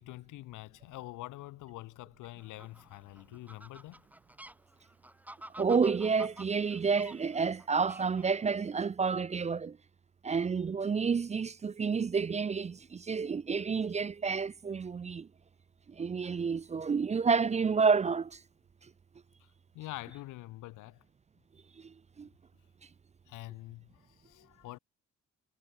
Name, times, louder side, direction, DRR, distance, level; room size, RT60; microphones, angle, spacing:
voice 1, 0.0-4.0 19.4-19.5 19.7-21.0 23.3-24.8, left 17 dB, 90° left, 1.1 m, -45 dB
Fowl, 2.4-8.5, right 1 dB, 5° right, 1.9 m, -52 dB
voice 2, 5.6-9.8 10.2-15.3 15.9-18.4 21.8-22.3, right 5 dB, 25° right, 0.4 m, -30 dB
cardioid pair, 90°, 30 cm